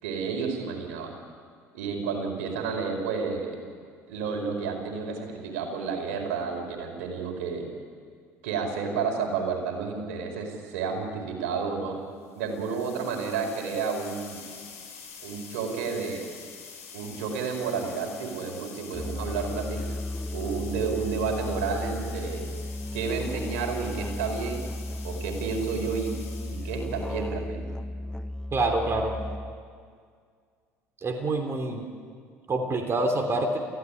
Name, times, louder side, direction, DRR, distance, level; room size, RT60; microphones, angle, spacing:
voice 1, 0.0-1.1 1.7-3.6 4.1-7.7 8.4-12.0 12.3-14.4 15.2-16.2 16.9-19.8 20.3-22.5 22.9-24.6 25.0-26.1 26.5-27.7, right 5 dB, 75° right, 3 dB, 4.7 m, -31 dB
sound 1, 12.3-27.2, left 6 dB, 85° left, 5.2 m, -46 dB
Musical instrument, 18.9-29.7, left 1 dB, 10° left, 1.0 m, -35 dB
voice 2, 28.5-29.1 31.0-31.8 32.5-33.6, right 2 dB, 35° right, 4 dB, 3.3 m, -26 dB
29.0 x 16.0 x 9.9 m, 2.1 s
hypercardioid pair, 65°, 8 cm